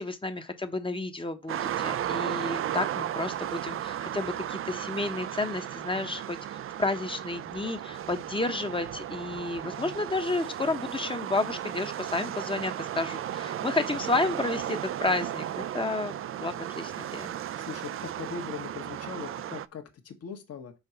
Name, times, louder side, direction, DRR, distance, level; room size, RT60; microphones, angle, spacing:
voice 1, 0.0-17.3, left 2 dB, 15° left, 0.9 m, -31 dB
sound 1, 1.5-19.7, right 11 dB, 45° right, 0.4 m, -35 dB
voice 2, 17.6-20.7, left 6 dB, 55° left, 1.4 m, -40 dB
5.8 x 3.8 x 5.7 m
cardioid pair, 90°, 30 cm